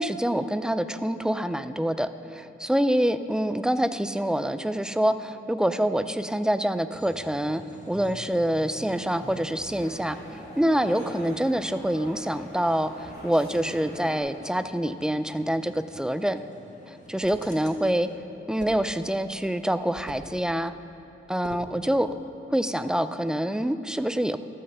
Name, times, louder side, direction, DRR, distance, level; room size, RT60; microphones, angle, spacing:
voice 1, 0.0-7.6 7.9-10.2 10.6-16.4 16.9-18.1 18.5-20.7 21.3-22.1 22.5-24.4, right 1 dB, 5° right, 11 dB, 0.3 m, -26 dB
sound 1, 6.9-18.2, left 1 dB, 35° left, 1.2 m, -48 dB
sound 2, 8.7-14.2, right 1 dB, 55° left, 2.9 m, -44 dB
sound 3, 17.1-17.5 18.6-18.9 19.9-20.4 21.4-21.8, right 3 dB, 65° right, 1.0 m, -42 dB
13.0 x 5.6 x 6.7 m, 2.8 s
wide cardioid pair, 115°, 21 cm